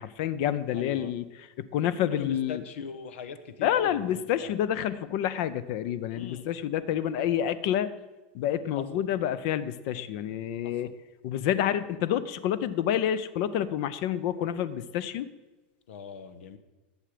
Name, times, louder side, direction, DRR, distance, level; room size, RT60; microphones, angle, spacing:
voice 1, 0.0-2.6 3.6-7.9 8.3-10.9 11.2-15.3, left 10 dB, 40° left, 15 dB, 0.5 m, -28 dB
voice 2, 0.7-1.1 2.2-4.0 6.1-6.5 15.9-16.6, left 6 dB, 85° left, 11 dB, 1.2 m, -40 dB
19.0 x 7.7 x 5.0 m, 1.2 s
supercardioid pair, 180°, 6 cm